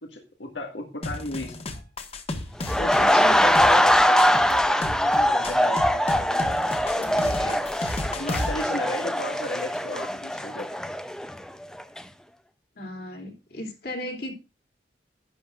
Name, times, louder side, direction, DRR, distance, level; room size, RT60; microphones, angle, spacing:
voice 1, 0.1-1.6 2.8-7.6 8.2-10.8, left 1 dB, 85° left, 2 dB, 1.9 m, -35 dB
sound 1, 1.0-8.6, left 1 dB, 35° left, 1.4 m, -33 dB
sound 2, 2.6-11.5 11.8-12.0, equal, 5° left, 0.6 m, -22 dB
voice 2, 3.0-3.4 12.7-14.3, left 1 dB, 60° left, 2 dB, 3.1 m, -35 dB
11.5 x 10.5 x 2.5 m, 0.28 s
head